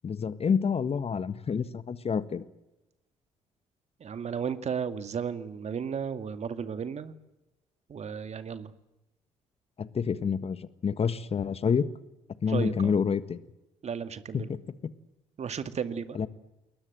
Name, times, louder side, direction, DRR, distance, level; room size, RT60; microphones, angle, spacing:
voice 1, 0.0-2.4 9.8-11.9 12.4-13.4 14.3-14.6 16.1-16.3, left 6 dB, 40° left, 14 dB, 1.6 m, -28 dB
voice 2, 4.0-7.1 7.9-8.7 12.5-12.9 13.8-14.5 15.4-16.2, right 7 dB, 45° right, 11 dB, 2.2 m, -34 dB
29.0 x 21.5 x 7.8 m, 0.97 s
hypercardioid pair, 50°, 16 cm